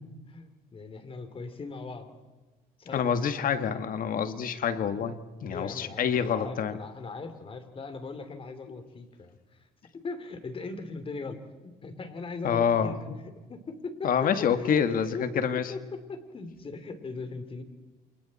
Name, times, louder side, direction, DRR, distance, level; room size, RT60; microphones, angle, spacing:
voice 1, 0.3-2.1 2.8-3.3 5.5-9.6 9.9-17.6, left 3 dB, 30° left, 9 dB, 2.9 m, -39 dB
voice 2, 2.9-6.8 12.4-13.2 14.0-15.7, left 7 dB, 55° left, 10 dB, 1.6 m, -27 dB
28.0 x 28.0 x 4.2 m, 1.2 s
cardioid pair, 110°, 17 cm